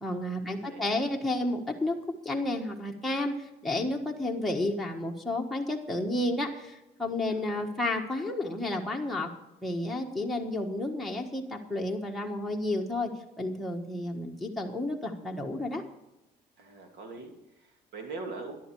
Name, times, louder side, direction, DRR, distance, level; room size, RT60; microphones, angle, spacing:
voice 1, 0.0-2.0 2.2-9.3 9.6-13.1 13.4-15.8, left 1 dB, ahead, -1 dB, 1.5 m, -31 dB
voice 2, 0.5-1.1 7.3-7.6 16.6-18.6, right 3 dB, 75° right, 3 dB, 2.8 m, -42 dB
13.0 x 11.0 x 4.8 m, 0.92 s
cardioid pair, 110°, 17 cm